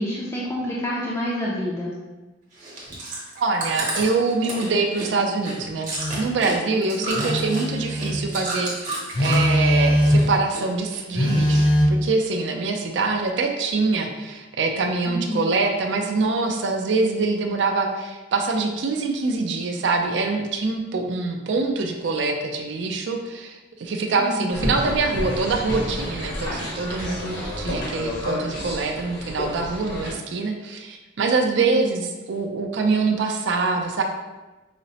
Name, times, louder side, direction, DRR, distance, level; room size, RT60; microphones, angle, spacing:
voice 1, 0.0-2.0 7.0-7.2 15.1-15.5 24.2-24.5 31.6-31.8, equal, 15° left, -6 dB, 0.4 m, -28 dB
Chewing mastication, 2.5-9.6 9.9-10.6 10.9-11.8 12.3-12.4, right 2 dB, 40° right, 0.8 m, -32 dB
voice 2, 3.4-34.0, right 3 dB, 70° right, 3 dB, 0.4 m, -24 dB
Telephone, 6.0-6.2 7.1-8.2 9.1-10.4 11.1-11.8, equal, 45° left, 0.7 m, -20 dB
sound 1, 24.5-30.1, left 1 dB, 80° left, 1.1 m, -30 dB
4.9 x 2.0 x 2.8 m, 1.1 s
head